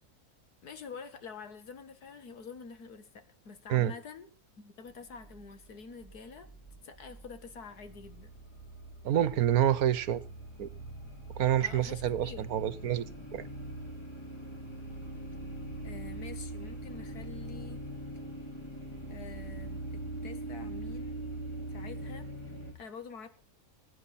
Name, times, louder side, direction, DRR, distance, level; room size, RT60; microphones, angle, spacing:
voice 1, 0.6-4.3 4.6-6.5 6.8-8.3 11.6-12.5 15.8-17.8 19.1-21.2 21.7-22.3 22.7-23.3, left 5 dB, 90° left, 2.2 m, -47 dB
sound 1, 4.9-22.7, right 1 dB, 15° left, 3.1 m, -42 dB
voice 2, 9.0-10.2 10.6-10.7 11.4-13.1 13.3-13.5, right 11 dB, 75° right, 1.4 m, -27 dB
21.5 x 9.8 x 4.2 m
omnidirectional pair, 1.6 m